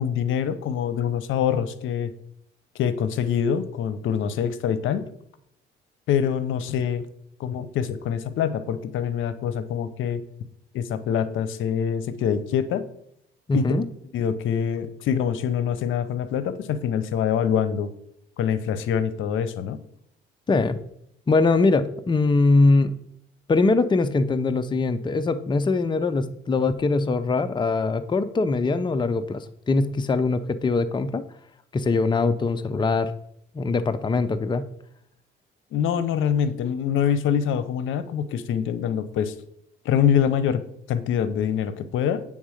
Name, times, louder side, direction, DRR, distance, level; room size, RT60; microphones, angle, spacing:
voice 1, 0.0-2.1 2.7-5.1 6.1-7.0 7.4-10.2 10.7-12.9 13.5-13.7 14.1-17.9 18.4-19.8 35.7-39.3 39.8-40.6 40.9-42.2, left 8 dB, 80° left, 13 dB, 0.7 m, -25 dB
voice 2, 13.5-13.9 20.5-20.8 21.3-22.9 23.5-31.2 31.7-33.1 33.5-34.6, left 3 dB, 25° left, 10 dB, 0.5 m, -22 dB
8.6 x 3.7 x 6.4 m, 0.74 s
cardioid pair, 90°, 20 cm